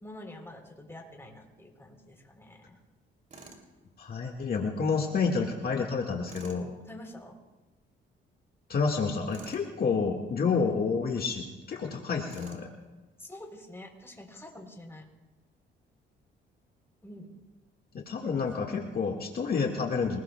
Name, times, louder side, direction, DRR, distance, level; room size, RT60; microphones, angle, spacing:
voice 1, 0.0-2.8 6.9-7.4 13.2-15.0 17.0-17.4 18.2-18.3 18.7-18.8, left 1 dB, 10° left, 2 dB, 3.7 m, -47 dB
Tools, 3.3-3.7 6.3-6.6 9.3-9.7 12.3-12.7, right 3 dB, 40° right, 3.1 m, -49 dB
voice 2, 4.0-6.7 8.7-12.7 17.9-20.2, left 5 dB, 50° left, 0 dB, 1.8 m, -29 dB
27.0 x 20.0 x 2.3 m, 1.2 s
cardioid pair, 90°, 20 cm